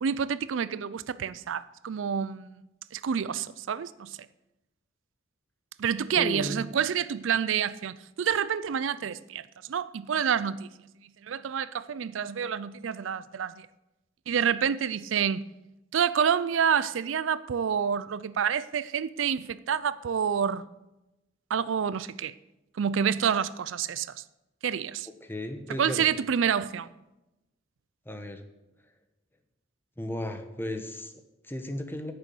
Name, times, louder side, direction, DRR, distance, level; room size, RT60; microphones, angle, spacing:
voice 1, 0.0-2.5 2.9-4.2 5.8-9.4 9.7-10.7 11.2-13.7 14.3-15.4 15.9-20.6 21.5-22.3 22.8-24.2 24.6-25.1 25.8-26.9, right 7 dB, 75° right, 0.4 m, -28 dB
voice 2, 6.2-6.6 25.2-26.0 28.0-28.4 30.0-32.1, left 1 dB, 10° left, 1.1 m, -35 dB
9.8 x 6.9 x 7.7 m
head